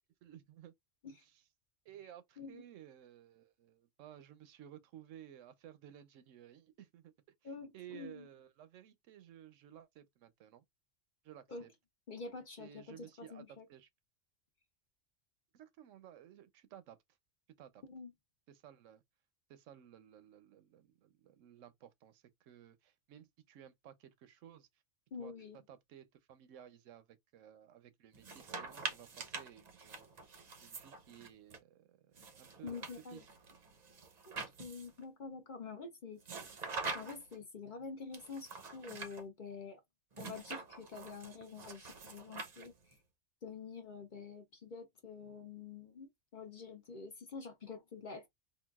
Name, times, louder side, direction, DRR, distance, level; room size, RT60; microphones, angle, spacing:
voice 1, 0.2-0.7 1.1-1.4 1.9-7.1 7.4-10.6 11.2-11.7 12.6-13.9 15.5-17.0 17.6-17.8 18.5-19.0 19.5-24.7 25.2-30.1 30.6-33.4, right 10 dB, 80° right, 0.9 m, -56 dB
voice 2, 7.4-8.3 11.5-11.7 12.1-13.6 17.8-18.1 25.1-25.6 32.6-33.2 34.3-36.2 36.9-39.8 40.2-43.0 43.4-48.3, left 4 dB, 50° left, 0.7 m, -47 dB
sound 1, 28.1-31.6 32.2-35.0 36.2-37.4 38.1-39.2 40.1-43.0, right 4 dB, 45° right, 0.6 m, -45 dB
3.8 x 2.3 x 2.3 m
omnidirectional pair, 1.3 m